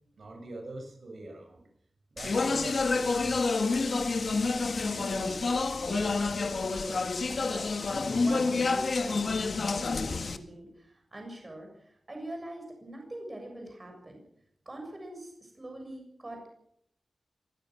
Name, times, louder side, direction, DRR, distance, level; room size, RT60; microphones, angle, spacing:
voice 1, 0.2-1.7 2.1-3.9, right 2 dB, 60° right, 3 dB, 7.2 m, -43 dB
Speech, 2.2-10.4, left 3 dB, 60° left, 1.9 m, -28 dB
voice 2, 4.9-14.2 14.7-16.5, right 1 dB, 25° right, 2 dB, 7.4 m, -43 dB
24.0 x 17.5 x 6.4 m, 0.72 s
wide cardioid pair, 120°, 0 cm